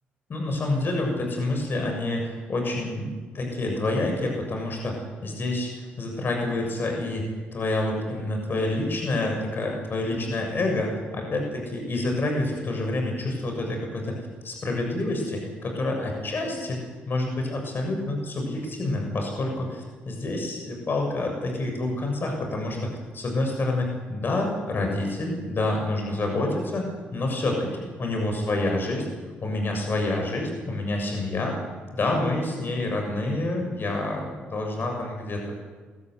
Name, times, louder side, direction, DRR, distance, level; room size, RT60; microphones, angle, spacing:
voice 1, 0.3-14.1 14.4-16.8 17.1-22.8 23.1-26.8 27.1-29.1 29.4-31.6 31.9-35.5, left 2 dB, 50° left, 2 dB, 7.1 m, -28 dB
23.0 x 14.5 x 9.7 m, 1.4 s
hypercardioid pair, 50°, 5 cm